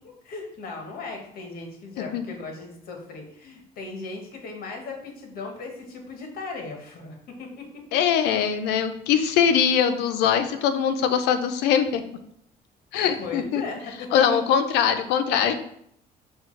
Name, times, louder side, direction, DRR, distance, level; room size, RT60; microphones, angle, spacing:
voice 1, 0.0-8.0 8.3-8.4 13.2-14.4, left 3 dB, 60° left, 2 dB, 1.1 m, -37 dB
voice 2, 7.9-12.0 12.9-13.6 14.1-15.5, left 8 dB, 85° left, 9 dB, 0.4 m, -22 dB
5.5 x 2.3 x 3.1 m, 0.72 s
cardioid pair, 110°, 17 cm